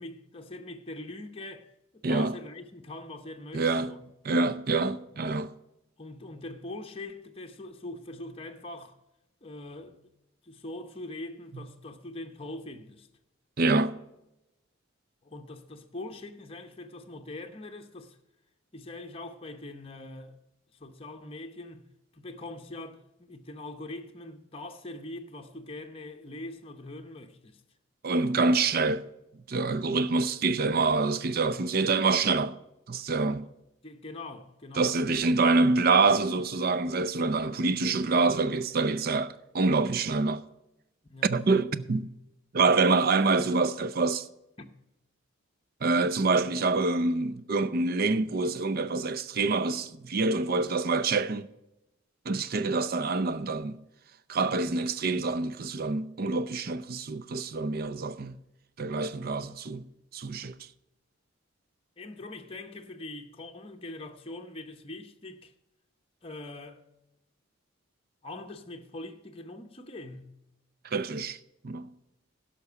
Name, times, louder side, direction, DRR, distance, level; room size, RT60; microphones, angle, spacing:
voice 1, 0.0-4.1 6.0-9.0 9.4-10.0 10.4-13.1 15.2-18.2 18.7-20.4 20.8-27.6 33.8-34.9 41.1-41.5 44.6-44.7 62.0-65.5 66.2-66.8 68.2-70.3, left 2 dB, 25° left, 0.8 m, -42 dB
voice 2, 2.0-2.4 3.5-4.0 4.2-5.5 13.6-14.0 28.0-29.0 29.5-32.6 32.9-33.5 34.8-40.4 41.2-42.1 42.5-44.3 45.8-51.5 52.3-53.8 54.3-58.4 58.8-59.9 60.1-60.6 70.9-71.4 71.6-71.9, right 3 dB, 45° right, 0.5 m, -26 dB
12.0 x 5.9 x 6.8 m
head